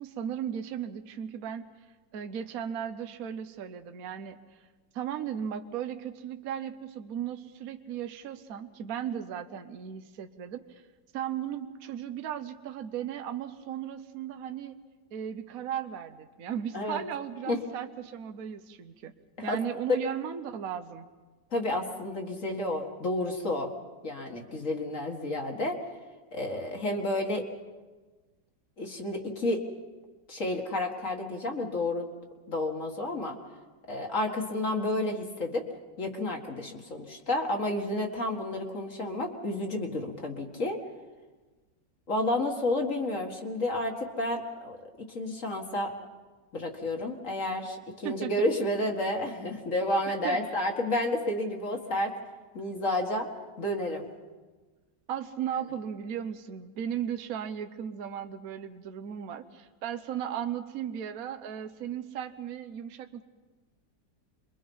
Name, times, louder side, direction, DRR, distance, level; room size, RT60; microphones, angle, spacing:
voice 1, 0.0-1.7 2.1-4.4 4.9-10.8 11.1-14.8 15.1-19.1 19.4-21.1 48.0-48.3 50.1-50.4 55.1-63.2, right 9 dB, 60° right, 8 dB, 1.3 m, -36 dB
voice 2, 21.5-23.7 24.0-25.8 26.3-27.4 28.8-29.6 30.3-32.1 32.5-33.4 33.9-35.6 36.0-40.8 42.1-44.8 45.1-45.9 46.5-52.1 52.5-53.3 53.6-54.1, left 1 dB, 45° left, 2 dB, 2.2 m, -30 dB
27.0 x 23.0 x 5.5 m, 1.3 s
omnidirectional pair, 1.9 m